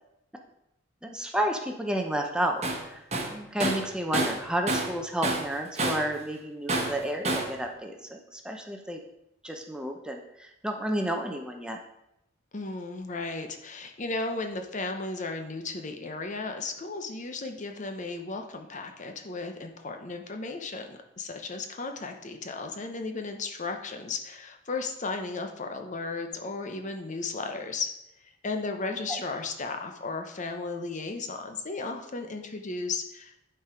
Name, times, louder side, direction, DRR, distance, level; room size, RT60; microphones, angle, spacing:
voice 1, 1.0-9.0 9.4-11.8 28.9-29.2, right 1 dB, 5° right, 2 dB, 0.8 m, -31 dB
Tools, 2.6-2.8 3.1-5.0 5.2-6.1 6.7-7.6, right 2 dB, 35° right, 1.2 m, -29 dB
voice 2, 12.5-27.9 28.4-33.4, left 3 dB, 40° left, 5 dB, 0.8 m, -35 dB
10.5 x 4.7 x 5.1 m, 0.84 s
head